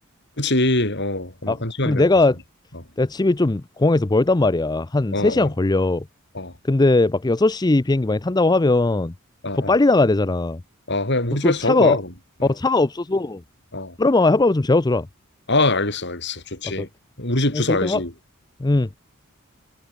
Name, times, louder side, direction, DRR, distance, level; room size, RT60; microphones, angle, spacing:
voice 1, 0.4-2.1 2.7-2.8 5.1-5.5 6.3-6.5 9.4-9.8 10.9-12.1 12.4-12.5 13.7-14.0 15.5-16.9 17.2-18.1, left 2 dB, 55° left, 7.8 m, -23 dB
voice 2, 1.9-2.4 3.0-6.0 6.7-9.1 9.6-10.6 11.4-12.0 12.4-13.4 14.0-15.1 17.5-18.0 18.6-18.9, left 2 dB, 20° left, 0.5 m, -19 dB
head